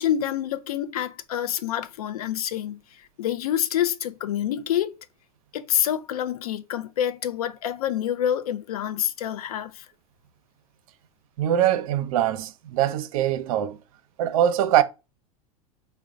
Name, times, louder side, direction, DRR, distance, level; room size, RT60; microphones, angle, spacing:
voice 1, 0.0-2.8 3.2-4.9 5.5-9.9, left 10 dB, 80° left, 0.5 m, -27 dB
voice 2, 11.4-13.8 14.2-14.8, right 11 dB, 65° right, 0.5 m, -22 dB
3.9 x 2.1 x 3.6 m
hypercardioid pair, 95°, 19 cm